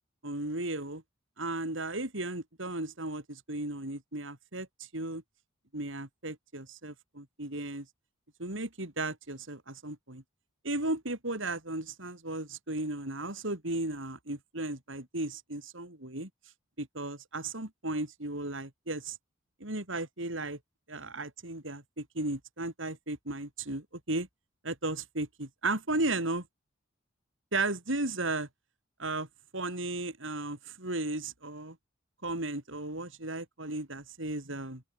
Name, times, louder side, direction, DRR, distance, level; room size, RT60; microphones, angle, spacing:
voice 1, 0.2-1.0 1.4-4.7 4.9-5.2 5.7-7.9 8.4-10.2 10.6-16.3 16.8-19.2 19.6-20.6 20.9-24.3 24.6-26.4 27.5-28.5 29.0-29.3 29.5-31.8 32.2-34.8, right 2 dB, 60° right, 3.9 m, -35 dB
open air
head